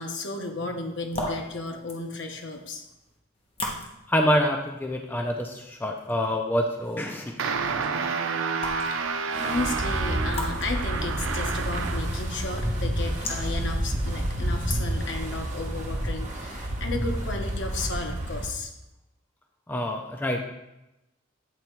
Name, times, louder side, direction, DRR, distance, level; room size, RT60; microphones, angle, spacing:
voice 1, 0.0-2.8 8.8-9.0 9.4-18.7, left 2 dB, 65° left, 4 dB, 0.9 m, -33 dB
sound 1, 0.8-15.2, left 1 dB, 30° left, 1.1 m, -41 dB
voice 2, 4.1-7.6 19.7-20.4, equal, 10° left, 2 dB, 0.4 m, -26 dB
sound 2, 7.4-12.2, right 5 dB, 90° right, 0.5 m, -29 dB
Wind, 9.3-18.5, right 1 dB, 40° right, 1.2 m, -30 dB
8.5 x 3.4 x 4.5 m, 0.94 s
head